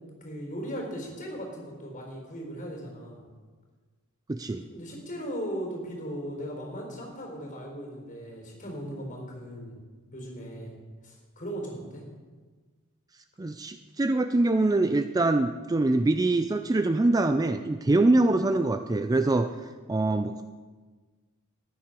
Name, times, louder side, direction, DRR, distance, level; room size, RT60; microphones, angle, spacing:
voice 1, 0.2-3.3 4.5-9.8 10.1-10.8 11.0-12.0, equal, 35° left, 0 dB, 4.1 m, -38 dB
voice 2, 4.3-4.6 13.4-19.5 19.9-20.4, right 2 dB, 15° right, 9 dB, 0.3 m, -24 dB
14.0 x 10.5 x 5.2 m, 1.4 s
head